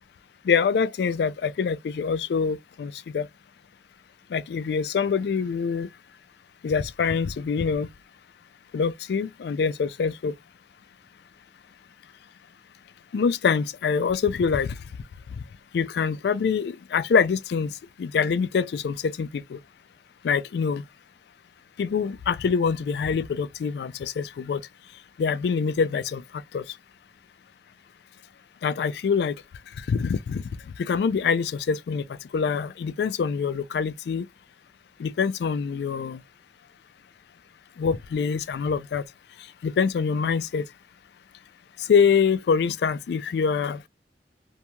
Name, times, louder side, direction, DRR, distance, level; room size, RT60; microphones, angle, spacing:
voice 1, 0.5-3.3 4.3-5.9 6.6-7.9 8.7-10.3 13.1-14.8 15.7-17.7 18.0-19.6 20.2-20.8 21.8-24.6 25.2-26.2 26.5-26.6 28.6-29.3 29.9-30.4 30.8-32.0 32.3-34.3 35.0-36.2 37.8-39.0 39.6-40.6 41.9-43.8, left 6 dB, 65° left, 0.3 m, -25 dB
2.6 x 2.2 x 2.9 m
head